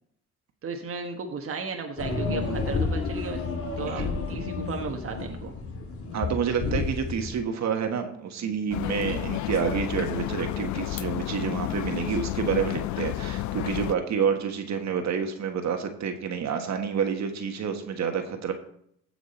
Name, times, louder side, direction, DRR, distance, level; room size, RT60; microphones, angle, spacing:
voice 1, 0.6-3.4 3.8-5.5 8.4-8.5, right 4 dB, 45° right, 3 dB, 1.3 m, -35 dB
sound 1, 2.0-7.4, left 4 dB, 50° left, 2.6 m, -31 dB
voice 2, 6.1-18.5, right 7 dB, 65° right, 5 dB, 1.5 m, -28 dB
sound 2, 8.7-14.0, left 15 dB, 70° left, 0.5 m, -31 dB
15.5 x 6.0 x 4.3 m, 0.70 s
cardioid pair, 90°, 30 cm